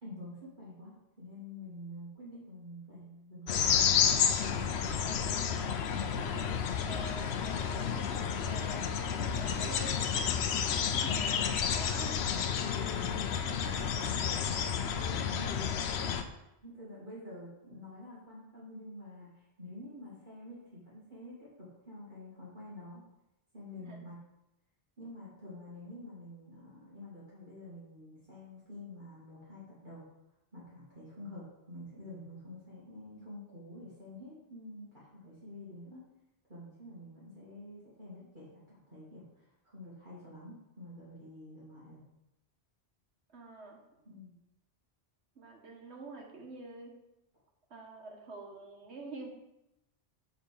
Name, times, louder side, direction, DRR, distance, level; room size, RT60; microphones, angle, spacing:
voice 1, 0.0-3.6 12.6-14.5 14.9-16.3 16.6-23.0 23.5-24.2 25.0-30.1 30.5-36.0 36.5-42.0 44.0-44.3, left 1 dB, 45° right, -8 dB, 2.4 m, -48 dB
sound 1, 3.5-16.2, left 7 dB, 75° left, 0.9 m, -31 dB
voice 2, 4.6-5.2 6.1-6.5 6.8-7.9 8.3-12.2 23.9-24.0 43.3-43.8 45.3-47.0 47.7-49.3, right 2 dB, 80° right, 0 dB, 1.7 m, -47 dB
7.4 x 3.8 x 6.6 m, 0.89 s
omnidirectional pair, 1.1 m